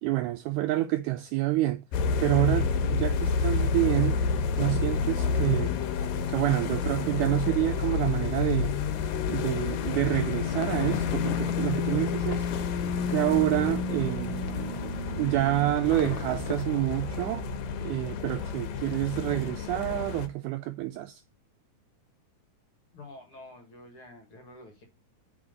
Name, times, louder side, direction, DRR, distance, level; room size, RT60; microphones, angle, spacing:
voice 1, 0.0-1.8 2.2-4.2 4.6-5.7 6.3-8.7 9.3-12.5 13.1-14.4 15.1-17.4 17.8-21.2, right 16 dB, 80° right, 1.8 m, -28 dB
sound 1, 1.9-20.3, left 5 dB, 85° left, 2.6 m, -29 dB
sound 2, 10.4-15.3 15.8-16.6, left 7 dB, 70° left, 2.2 m, -40 dB
sound 3, 12.5-17.6, right 7 dB, 60° right, 1.3 m, -44 dB
voice 2, 22.9-24.8, left 2 dB, 50° left, 1.9 m, -48 dB
6.1 x 4.3 x 6.4 m
omnidirectional pair, 4.0 m